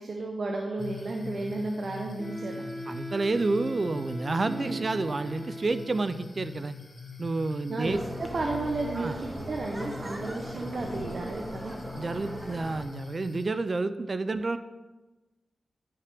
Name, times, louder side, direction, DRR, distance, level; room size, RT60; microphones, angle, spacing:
voice 1, 0.0-2.6 4.5-4.8 7.7-11.8, right 2 dB, 60° right, 1 dB, 0.8 m, -33 dB
sound 1, 0.8-13.5, left 6 dB, 40° left, 0.8 m, -44 dB
Wind instrument woodwind instrument, 2.2-6.3, right 1 dB, 15° left, 1.7 m, -40 dB
voice 2, 2.9-6.8 7.2-8.0 8.9-9.1 12.0-14.6, right 3 dB, 45° right, 12 dB, 0.4 m, -29 dB
sound 2, 7.8-12.8, right 1 dB, 20° right, 1.0 m, -39 dB
10.5 x 5.7 x 3.4 m, 1.2 s
cardioid pair, 70°, 0 cm